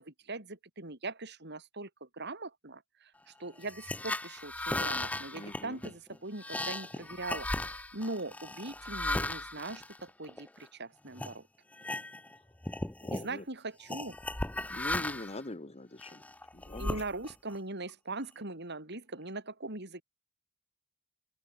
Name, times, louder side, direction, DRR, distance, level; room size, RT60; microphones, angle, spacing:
voice 1, 0.0-11.5 13.1-14.1 16.8-20.0, right 2 dB, 55° right, 4.8 m, -41 dB
sound 1, 3.6-10.7 11.2-11.3 11.7-12.4 12.6-13.3 13.9-15.4 16.0-17.5, left 2 dB, 5° left, 0.4 m, -36 dB
voice 2, 5.3-5.8 13.0-13.4 14.5-16.2 16.5-17.0, left 2 dB, 30° left, 1.4 m, -43 dB
open air
head